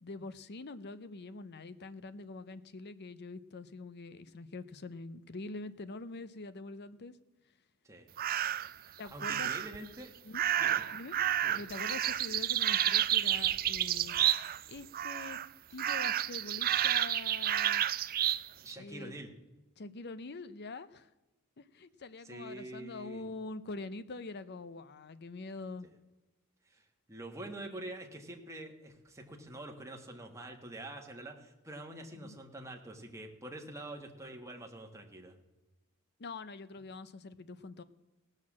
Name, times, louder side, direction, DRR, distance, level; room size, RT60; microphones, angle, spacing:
voice 1, 0.0-7.1 9.0-9.6 10.2-10.4 10.9-11.1 11.5-14.2 14.7-15.4 15.7-17.8 18.8-19.1 19.8-21.1 21.6-25.9 32.1-32.4 36.2-37.8, left 3 dB, 50° left, 13 dB, 0.7 m, -44 dB
sound 1, 8.2-8.7 9.2-9.8 10.3-14.7 14.9-15.5 15.8-18.4, right 11 dB, 45° right, 0.4 m, -30 dB
voice 2, 8.7-10.1 10.6-10.8 11.4-11.6 18.6-19.3 22.2-23.2 26.7-35.4, right 1 dB, 15° right, 2 dB, 1.5 m, -46 dB
17.5 x 6.6 x 7.4 m, 1.1 s
head